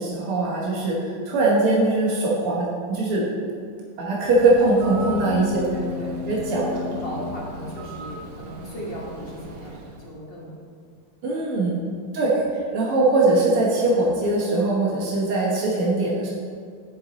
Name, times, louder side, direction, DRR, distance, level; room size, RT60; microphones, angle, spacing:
voice 1, 0.0-3.2 4.0-5.6 6.3-6.7 11.2-11.7 12.1-16.3, right 2 dB, 90° right, -4 dB, 2.1 m, -21 dB
Bird, 4.3-10.1, right 3 dB, 65° right, 0.8 m, -39 dB
sound 1, 4.8-8.5, left 6 dB, 80° left, 1.4 m, -34 dB
voice 2, 5.5-6.2 6.5-10.5, equal, 35° left, -4 dB, 1.1 m, -36 dB
7.2 x 7.1 x 4.0 m, 2.1 s
omnidirectional pair, 2.4 m